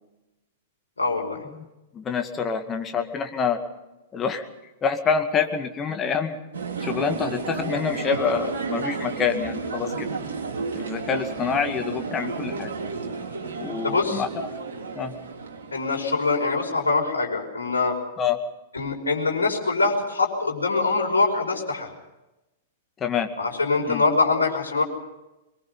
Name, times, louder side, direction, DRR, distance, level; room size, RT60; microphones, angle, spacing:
voice 1, 1.0-1.4 13.8-14.2 15.7-17.9 18.7-21.9 23.4-24.8, left 3 dB, 75° left, 0 dB, 5.3 m, -23 dB
voice 2, 1.9-3.6 4.1-4.5 4.8-6.4 6.8-10.1 10.7-12.7 13.6-14.5 15.0-15.1 18.2-18.4 23.0-23.3 23.9-24.0, left 6 dB, 20° left, 6 dB, 2.2 m, -26 dB
sound 1, 6.5-16.4, right 4 dB, 65° right, 3.6 m, -32 dB
23.0 x 22.5 x 5.6 m, 0.98 s
figure-of-eight pair, 100°, 0 cm